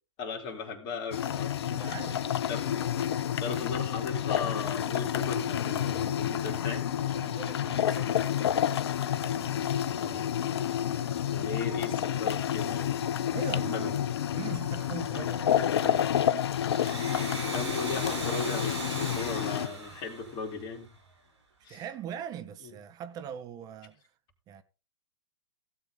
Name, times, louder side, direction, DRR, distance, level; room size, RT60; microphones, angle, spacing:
voice 1, 0.2-1.5 2.5-2.7 3.4-6.9 10.0-10.3 11.3-12.9 13.6-13.9 17.5-20.9 21.6-21.8, left 4 dB, 30° left, 4.0 m, -37 dB
sound 1, 1.1-19.7, left 10 dB, 65° left, 0.8 m, -29 dB
voice 2, 1.6-2.3 7.1-8.2 9.1-9.8 13.3-14.0 14.3-16.4 21.7-24.0 24.5-24.6, right 9 dB, 25° right, 1.1 m, -42 dB
Domestic sounds home sounds, 16.6-21.1, right 3 dB, 70° right, 4.9 m, -39 dB
16.5 x 8.1 x 4.0 m
hypercardioid pair, 120°, 15 cm